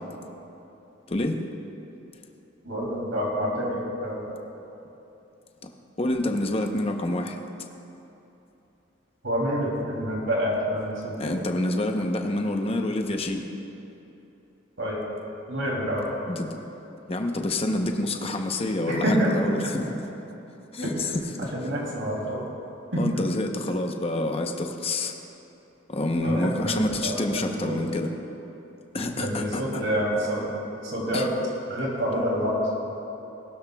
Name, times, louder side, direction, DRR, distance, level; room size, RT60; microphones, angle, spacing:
voice 1, 1.1-1.4 6.0-7.4 11.2-13.5 16.3-16.6 17.1-19.9 20.7-21.5 23.0-25.1 25.9-28.1 28.9-29.8 31.1-31.3, left 1 dB, 30° left, 4 dB, 0.8 m, -27 dB
voice 2, 2.6-4.2 9.2-11.4 14.8-15.0 15.5-16.1 18.9-19.3 20.8-20.9 21.5-22.5 22.9-23.0 26.2-27.8 29.2-30.5 30.8-31.3 31.7-32.6, equal, 80° right, -3 dB, 2.8 m, -27 dB
19.5 x 12.0 x 2.3 m, 2.9 s
head